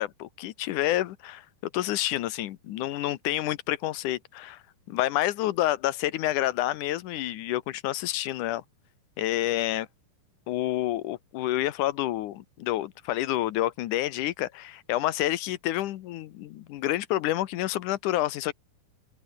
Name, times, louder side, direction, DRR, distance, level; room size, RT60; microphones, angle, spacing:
voice 1, 0.0-1.5 1.7-4.6 4.9-8.6 9.2-9.9 10.5-18.5, left 14 dB, 70° left, 2.2 m, -28 dB
omnidirectional pair, 4.2 m